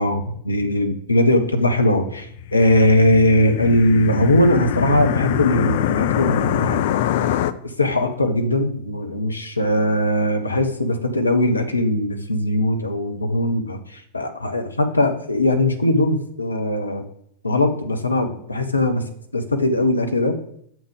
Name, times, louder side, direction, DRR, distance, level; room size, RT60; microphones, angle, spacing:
voice 1, 0.0-6.8 7.8-17.0 17.4-19.1 19.3-20.4, left 1 dB, 80° left, 6 dB, 0.9 m, -20 dB
sound 1, 2.3-7.5, left 11 dB, 55° left, 0.4 m, -23 dB
7.3 x 6.2 x 5.1 m, 0.68 s
figure-of-eight pair, 90°, 0 cm